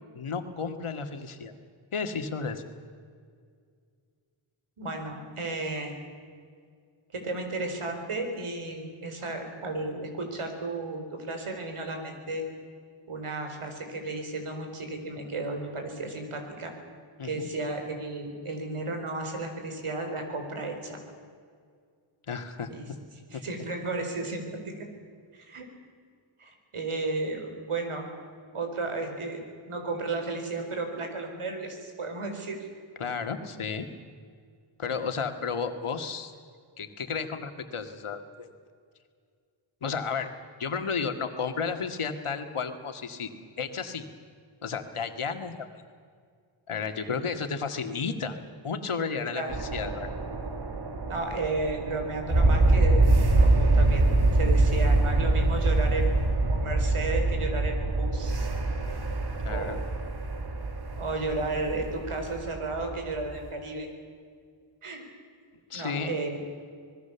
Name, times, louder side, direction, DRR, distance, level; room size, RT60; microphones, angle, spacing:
voice 1, 0.1-1.5 1.9-2.6 17.2-17.5 22.3-22.7 33.0-33.9 34.8-36.3 36.8-38.5 39.8-40.3 40.6-43.3 43.6-44.0 44.6-45.5 46.7-48.4 48.6-50.1 59.4-59.8 65.7-66.1, left 5 dB, 80° left, 6 dB, 2.2 m, -32 dB
voice 2, 4.8-5.9 7.1-12.5 13.1-16.7 17.2-21.0 22.7-22.9 23.3-24.9 25.3-25.7 26.4-28.1 28.5-29.4 29.7-32.6 46.9-47.1 49.3-49.5 51.1-53.1 53.4-56.1 56.5-58.5 59.4-59.8 61.0-63.9 64.8-65.0 65.7-66.4, right 2 dB, 85° right, 4 dB, 4.5 m, -33 dB
sound 1, 49.5-63.4, right 2 dB, 50° right, 2.4 m, -25 dB
25.5 x 20.0 x 7.1 m, 2.1 s
wide cardioid pair, 65°, 49 cm